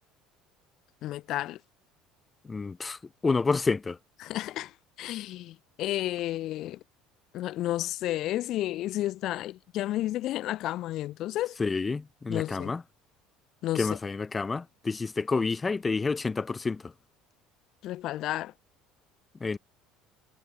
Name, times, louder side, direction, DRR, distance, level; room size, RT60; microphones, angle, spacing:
voice 1, 1.0-1.6 4.2-6.8 7.3-11.6 12.3-12.7 13.6-14.0 17.8-18.5, left 14 dB, 55° left, 5.1 m, -32 dB
voice 2, 2.4-4.0 11.6-12.8 13.7-16.9 19.4-19.6, left 4 dB, 15° left, 2.3 m, -29 dB
cardioid pair, 135°, 0 cm